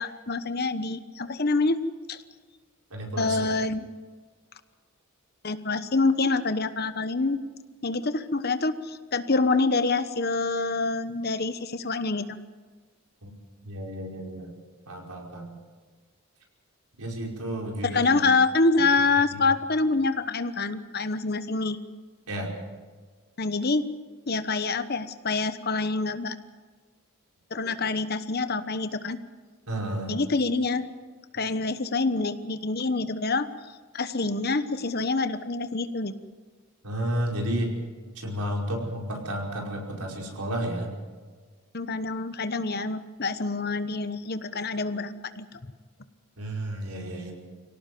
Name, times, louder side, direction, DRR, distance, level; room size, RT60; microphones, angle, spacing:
voice 1, 0.0-1.8 2.1-2.2 3.2-3.9 5.4-7.4 7.8-12.4 17.8-21.8 23.4-23.9 24.3-26.4 27.5-29.2 30.1-30.8 31.3-33.5 33.9-36.1 41.7-45.6, left 3 dB, 45° left, 11 dB, 1.1 m, -26 dB
voice 2, 2.9-3.5 13.2-13.3 13.6-14.5 14.9-15.5 17.0-18.1 19.3-19.4 22.3-22.6 29.7-30.1 31.3-31.4 36.8-37.7 38.2-40.9 46.4-47.3, right 1 dB, 90° right, 0 dB, 5.3 m, -32 dB
25.0 x 17.5 x 7.7 m, 1.5 s
head